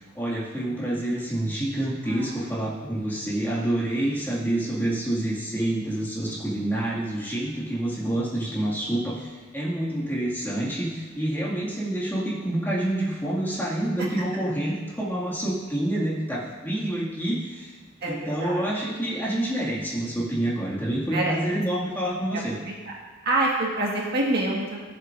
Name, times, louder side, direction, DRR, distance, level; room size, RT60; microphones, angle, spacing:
voice 1, 0.1-17.7 18.0-22.6, right 1 dB, 10° left, -7 dB, 2.0 m, -27 dB
voice 2, 18.0-18.6 21.1-21.4 22.6-22.9 23.2-24.8, right 2 dB, 50° right, -3 dB, 1.7 m, -26 dB
15.0 x 7.7 x 2.6 m, 1.4 s
head